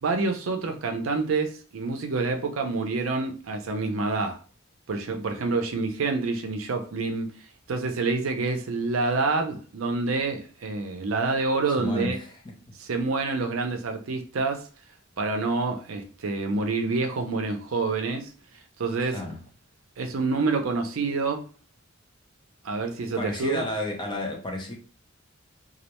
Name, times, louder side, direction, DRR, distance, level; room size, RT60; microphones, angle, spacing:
voice 1, 0.0-4.4 4.9-7.3 7.7-12.2 12.8-14.7 15.2-18.3 18.8-19.2 20.0-21.5 22.6-23.6, right 3 dB, 85° right, 0.5 m, -27 dB
voice 2, 11.8-12.4 12.7-12.8 19.0-19.4 23.1-24.7, left 1 dB, 25° left, 0.6 m, -32 dB
2.3 x 2.1 x 2.9 m
head